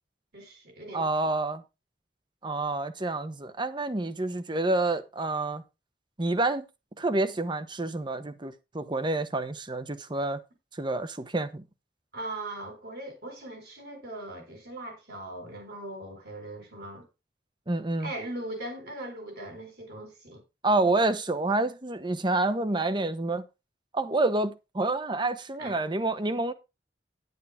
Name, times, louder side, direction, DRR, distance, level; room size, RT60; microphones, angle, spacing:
voice 1, 0.3-1.3 12.1-17.1 18.0-20.4 25.6-25.8, right 1 dB, 65° right, 4.1 m, -40 dB
voice 2, 0.9-1.6 2.4-5.6 6.2-6.6 7.0-10.4 10.7-11.6 17.7-18.1 20.6-23.4 23.9-26.5, right 2 dB, 25° right, 0.9 m, -28 dB
10.5 x 9.4 x 3.5 m
head